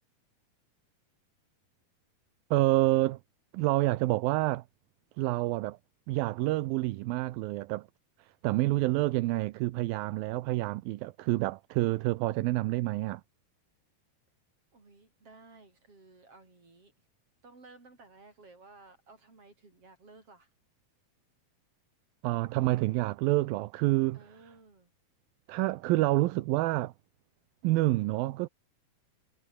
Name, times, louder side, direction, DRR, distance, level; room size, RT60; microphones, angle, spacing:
voice 1, 2.5-3.2 3.5-4.6 5.2-5.8 6.1-7.9 8.4-13.2 22.2-24.2 25.5-26.9 27.6-28.5, right 18 dB, 80° right, 2.5 m, -28 dB
voice 2, 14.7-16.9 17.4-20.5 24.1-24.9, right 3 dB, 35° right, 7.8 m, -55 dB
omnidirectional pair, 4.3 m